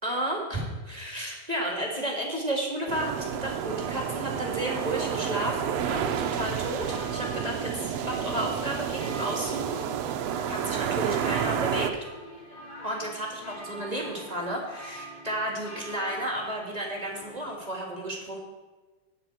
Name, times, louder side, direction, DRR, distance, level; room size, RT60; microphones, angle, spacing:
voice 1, 0.0-9.9 10.5-12.0 12.8-18.4, right 1 dB, 15° right, -1 dB, 1.7 m, -32 dB
sound 1, 2.9-11.9, right 9 dB, 70° right, 1.6 m, -30 dB
sound 2, 3.0-17.6, right 1 dB, 40° left, 2.5 m, -45 dB
19.0 x 7.9 x 4.4 m, 1.3 s
omnidirectional pair, 3.6 m